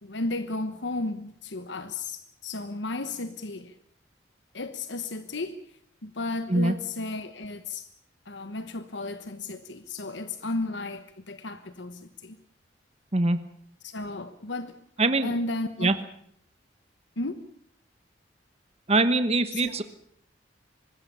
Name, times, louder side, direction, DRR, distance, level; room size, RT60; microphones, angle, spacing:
voice 1, 0.0-3.7 4.5-5.6 6.0-7.9 8.2-12.4 13.8-16.0 17.2-17.4 19.5-19.8, left 2 dB, 80° left, 10 dB, 1.2 m, -34 dB
voice 2, 15.0-15.3 15.8-15.9 18.9-19.8, right 2 dB, 35° right, 11 dB, 1.1 m, -23 dB
25.0 x 20.5 x 6.9 m, 0.69 s
head